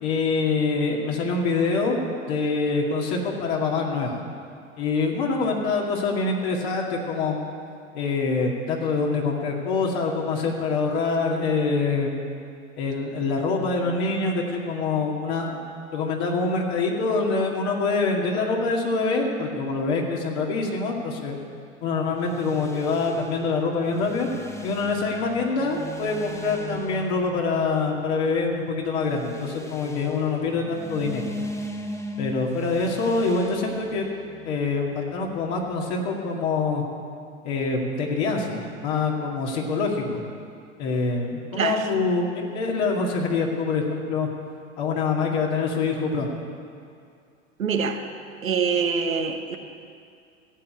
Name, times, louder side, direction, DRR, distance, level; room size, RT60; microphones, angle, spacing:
voice 1, 0.0-2.0 2.3-4.2 4.8-7.4 7.9-12.2 12.8-15.6 15.9-21.4 21.8-24.3 24.6-31.3 32.2-34.1 34.4-36.8 37.4-40.2 40.8-42.2 42.5-44.3 44.8-46.3, left 4 dB, 55° left, -1 dB, 2.3 m, -25 dB
sound 1, 22.1-35.7, left 1 dB, 5° left, 0.8 m, -39 dB
voice 2, 41.5-41.9 47.6-48.0 48.4-49.6, right 6 dB, 85° right, 5 dB, 1.1 m, -25 dB
15.5 x 7.4 x 8.4 m, 2.3 s
hypercardioid pair, 95°, 40 cm